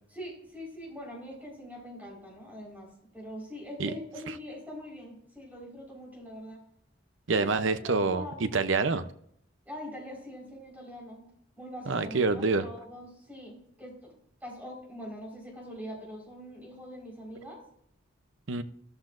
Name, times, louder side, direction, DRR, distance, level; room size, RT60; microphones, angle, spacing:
voice 1, 0.1-6.6 7.3-8.4 9.6-11.3 11.6-14.1 14.4-17.6, equal, 10° right, 4.6 m, -43 dB
voice 2, 7.3-9.1 11.9-12.7 18.5-18.6, right 4 dB, 70° right, 0.7 m, -27 dB
14.0 x 13.5 x 2.6 m
head